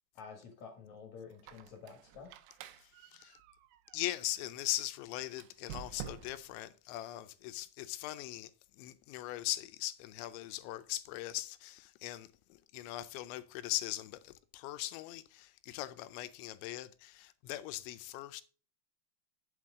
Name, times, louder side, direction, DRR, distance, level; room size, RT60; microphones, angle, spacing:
voice 1, 0.1-2.4, left 5 dB, 60° left, 2.0 m, -50 dB
Squeak, 1.3-4.5 5.3-6.6, right 10 dB, 90° right, 3.2 m, -50 dB
voice 2, 2.8-3.4 3.9-18.4, left 15 dB, 80° left, 2.8 m, -40 dB
9.0 x 7.6 x 3.6 m
omnidirectional pair, 5.5 m